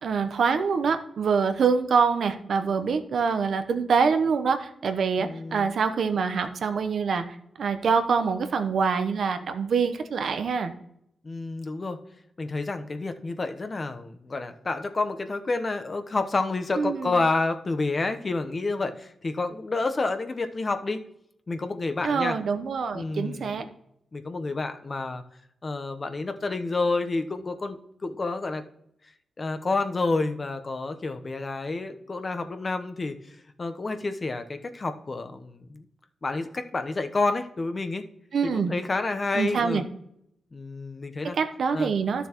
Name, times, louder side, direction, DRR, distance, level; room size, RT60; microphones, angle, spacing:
voice 1, 0.0-7.2 7.6-10.7 16.8-17.2 22.0-23.7 38.3-38.7 39.3-39.8 41.2-42.3, right 5 dB, 75° right, 8 dB, 0.8 m, -25 dB
voice 2, 5.2-5.8 11.2-12.0 12.4-21.0 21.5-22.4 22.9-23.6 24.1-25.2 25.6-28.6 29.4-35.8 36.2-38.0 38.4-39.9 40.5-41.4 41.7-42.0, left 3 dB, 40° left, 8 dB, 0.9 m, -29 dB
12.0 x 6.9 x 3.0 m, 0.75 s
cardioid pair, 55°, 0 cm